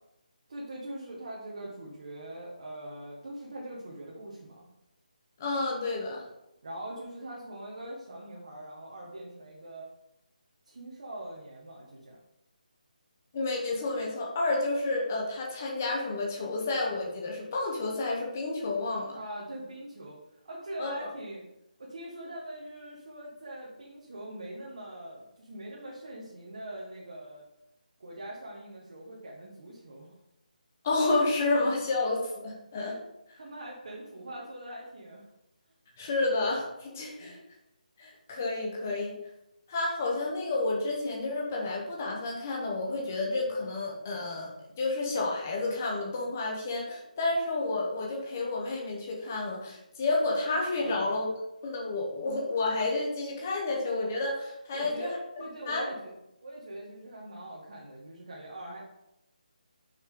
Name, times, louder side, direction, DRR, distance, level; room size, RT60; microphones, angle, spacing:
voice 1, 0.5-4.6 6.6-9.9 10.6-12.2 19.1-20.2 20.4-21.4 21.8-27.4 28.0-30.1 33.4-35.3 37.2-37.3 50.8-51.2 54.7-58.8, right 1 dB, 40° right, -4 dB, 1.5 m, -42 dB
voice 2, 5.4-6.2 13.3-19.2 20.8-21.1 30.8-33.0 36.0-37.4 38.0-39.1 39.7-44.5 44.8-51.3 51.6-55.1 55.7-55.8, left 2 dB, 15° left, -2 dB, 1.1 m, -30 dB
8.8 x 5.7 x 3.8 m, 0.88 s
hypercardioid pair, 180°, 5 cm